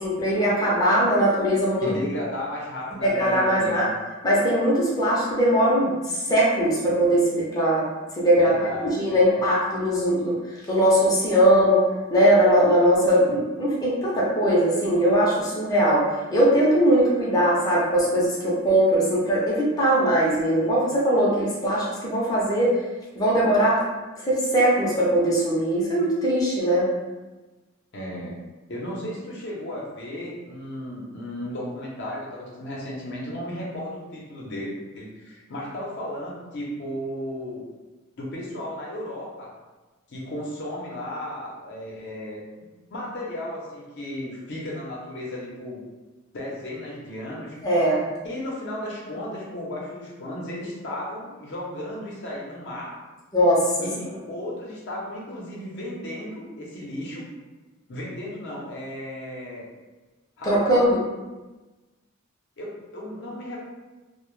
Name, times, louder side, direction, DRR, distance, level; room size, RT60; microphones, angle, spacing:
voice 1, 0.0-1.9 3.0-3.9 4.2-7.9 8.2-10.4 10.7-11.8 12.1-22.8 23.1-23.8 24.2-26.9 47.6-48.0 53.3-53.7 60.4-61.0, equal, 20° left, -6 dB, 0.5 m, -20 dB
voice 2, 1.8-3.9 8.4-9.4 27.9-28.3 28.7-37.6 38.2-39.5 40.1-45.8 46.3-47.6 48.2-53.0 53.8-57.2 57.9-59.6 60.4-60.8 62.6-63.6, left 1 dB, 60° left, -4 dB, 0.6 m, -34 dB
2.0 x 2.0 x 3.0 m, 1.2 s
head